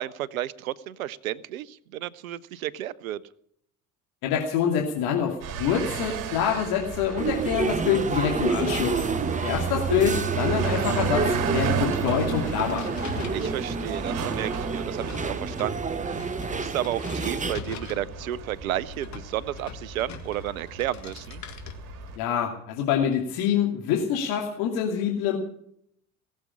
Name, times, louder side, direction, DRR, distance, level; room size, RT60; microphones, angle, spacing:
voice 1, 0.0-3.2 9.2-9.5 13.3-21.4, right 12 dB, 70° right, 19 dB, 0.8 m, -32 dB
voice 2, 4.2-9.0 9.4-12.9 22.2-25.4, left 8 dB, 60° left, 0 dB, 2.7 m, -26 dB
sound 1, 5.4-22.2, right 7 dB, 50° right, 2.2 m, -33 dB
sound 2, 7.2-17.5, right 4 dB, 15° right, 1.2 m, -29 dB
sound 3, 11.6-22.2, left 6 dB, 40° left, 2.4 m, -43 dB
19.5 x 7.5 x 9.9 m, 0.68 s
figure-of-eight pair, 55°, 43 cm